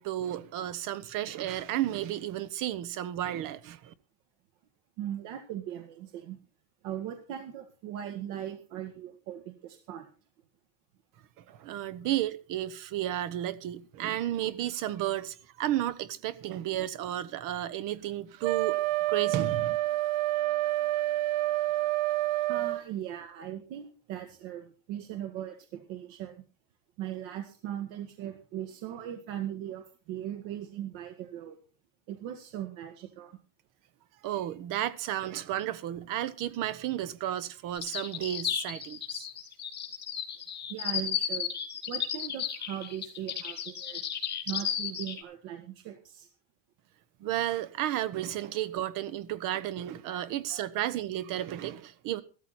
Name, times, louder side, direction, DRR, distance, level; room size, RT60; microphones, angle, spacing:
voice 1, 0.0-3.9 11.4-18.8 19.1-19.8 34.2-39.3 47.2-52.2, right 12 dB, 50° right, 1.1 m, -33 dB
voice 2, 5.0-6.4 6.8-10.1 22.5-26.4 27.0-31.6 32.1-33.4 40.7-41.5 41.9-44.0 44.5-46.3 50.1-50.7, right 11 dB, 90° right, 2.0 m, -39 dB
Wind instrument woodwind instrument, 18.4-22.9, right 16 dB, 70° right, 0.8 m, -28 dB
sound 1, 37.7-45.2, left 9 dB, 25° left, 2.4 m, -33 dB
14.5 x 13.5 x 4.3 m
cardioid pair, 175°, 41 cm